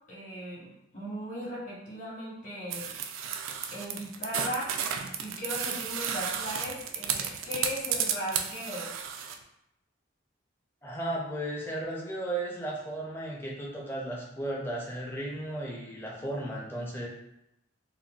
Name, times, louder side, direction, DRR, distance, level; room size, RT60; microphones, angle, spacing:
voice 1, 0.1-2.9 3.7-4.8 5.2-8.9, equal, 40° left, -5 dB, 1.0 m, -37 dB
sound 1, 2.7-9.4, right 8 dB, 90° right, 0.3 m, -33 dB
voice 2, 10.8-17.1, right 1 dB, 10° left, -3 dB, 0.4 m, -35 dB
3.8 x 2.1 x 2.3 m, 0.81 s
head